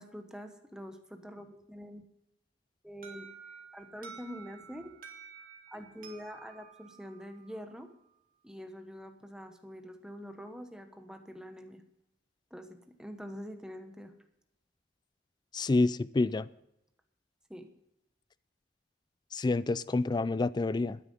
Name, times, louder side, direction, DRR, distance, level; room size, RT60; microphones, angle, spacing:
voice 1, 0.0-2.0 2.8-3.3 3.7-5.0 5.7-7.9 8.4-11.8 12.5-14.1 17.5-17.7, equal, 5° right, 6 dB, 1.1 m, -45 dB
Alarm, 3.0-7.8, right 6 dB, 50° right, 2.0 m, -51 dB
voice 2, 15.5-16.5 19.3-21.0, left 3 dB, 25° left, 18 dB, 0.3 m, -28 dB
12.5 x 10.0 x 5.4 m, 0.84 s
head